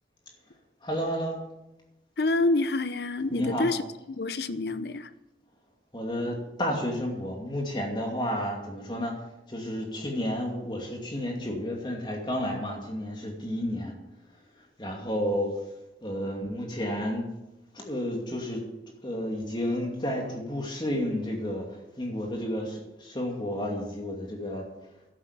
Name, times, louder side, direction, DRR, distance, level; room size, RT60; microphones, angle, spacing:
voice 1, 0.8-1.4 3.3-3.7 5.9-13.9 14.8-15.5 16.0-17.3 17.7-18.6 19.0-24.7, equal, 25° left, 1 dB, 2.5 m, -31 dB
voice 2, 2.2-3.8 4.2-5.1, left 2 dB, 65° left, 13 dB, 0.7 m, -27 dB
11.0 x 8.8 x 6.8 m, 0.96 s
head